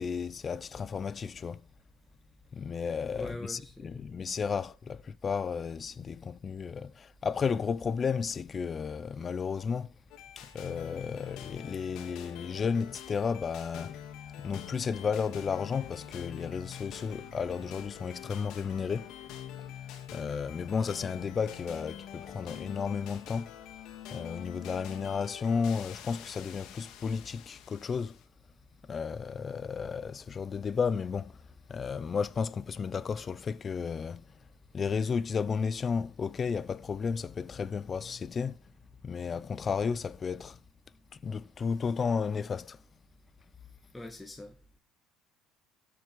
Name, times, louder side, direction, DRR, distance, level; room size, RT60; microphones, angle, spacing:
voice 1, 0.0-1.6 2.5-9.9 10.4-14.0 14.4-19.1 20.1-23.5 24.1-28.2 28.9-31.4 31.7-34.3 34.7-38.6 39.0-40.6 41.1-42.8, left 6 dB, 30° left, 0.7 m, -33 dB
voice 2, 3.1-4.0 43.9-44.5, left 1 dB, 10° left, 1.8 m, -43 dB
sound 1, 10.1-28.2, left 10 dB, 65° left, 2.6 m, -46 dB
13.0 x 7.6 x 4.7 m
cardioid pair, 120°, 0 cm